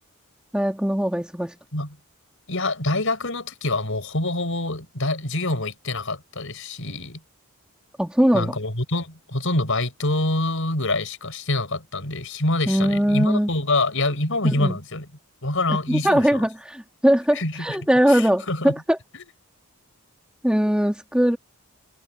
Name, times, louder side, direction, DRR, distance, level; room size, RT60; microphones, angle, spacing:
voice 1, 0.5-1.5 8.0-8.6 12.7-13.5 14.5-14.8 15.7-19.0 20.4-21.4, equal, 5° right, 2.0 m, -21 dB
voice 2, 2.5-7.2 8.3-15.1 15.4-16.4 17.3-17.7 18.1-18.7 19.1-19.2, left 2 dB, 60° left, 6.8 m, -26 dB
head